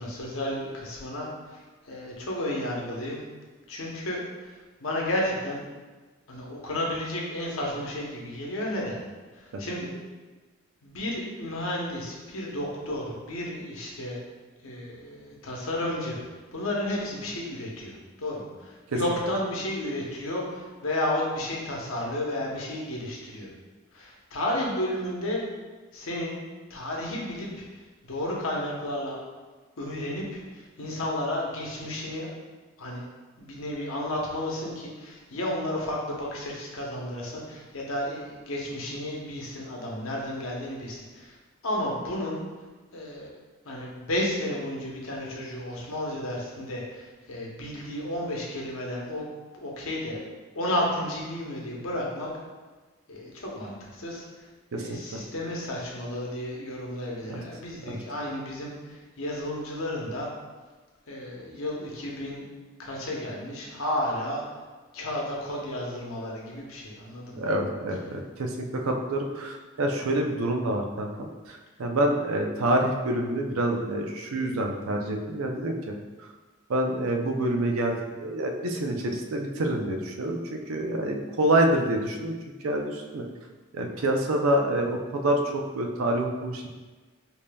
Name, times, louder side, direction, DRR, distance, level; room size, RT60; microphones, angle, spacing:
voice 1, 0.0-3.2 3.7-5.6 6.3-9.0 9.3-9.9 10.8-14.2 14.6-16.2 16.5-23.5 23.9-25.4 25.9-26.4 26.7-29.2 29.8-32.3 32.8-33.0 33.4-41.3 41.6-42.4 42.9-43.3 43.6-49.3 49.5-50.2 50.5-52.3 53.1-54.4 54.8-60.3 61.1-62.4 62.8-64.4 64.9-67.5, left 1 dB, 75° left, -2 dB, 0.8 m, -32 dB
voice 2, 54.7-55.2 57.3-57.4 57.8-58.0 67.3-76.0 76.7-82.3 82.6-83.3 83.7-86.7, right 1 dB, 85° right, 2 dB, 0.5 m, -27 dB
5.0 x 2.8 x 2.2 m, 1.3 s
head